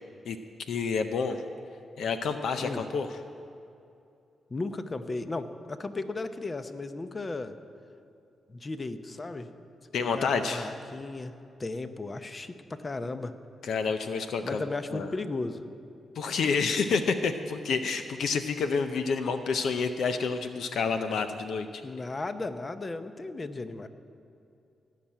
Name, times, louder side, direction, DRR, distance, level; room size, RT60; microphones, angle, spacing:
voice 1, 0.7-1.4 2.0-3.1 9.9-10.7 13.6-14.6 14.9-15.1 16.2-21.8, left 5 dB, 75° left, 8 dB, 0.6 m, -29 dB
voice 2, 4.5-7.6 8.5-9.5 10.0-11.3 11.6-13.3 14.4-15.6 21.8-23.9, left 3 dB, 35° left, 10 dB, 0.8 m, -35 dB
17.0 x 5.9 x 8.9 m, 2.6 s
supercardioid pair, 55°, 0 cm